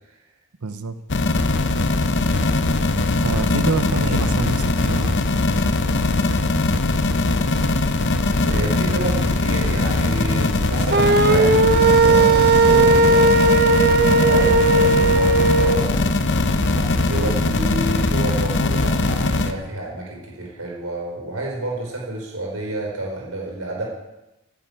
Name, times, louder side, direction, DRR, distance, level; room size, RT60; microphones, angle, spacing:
voice 1, 0.6-1.0 3.2-5.1, right 4 dB, 90° right, 10 dB, 0.9 m, -26 dB
sound 1, 1.1-19.5, left 2 dB, 50° left, 0.9 m, -20 dB
voice 2, 8.4-13.3 14.0-16.0 16.6-23.8, right 2 dB, 70° right, -2 dB, 4.7 m, -29 dB
sound 2, 10.9-15.8, right 3 dB, 45° right, 0.7 m, -16 dB
10.5 x 10.5 x 8.4 m, 1.0 s
head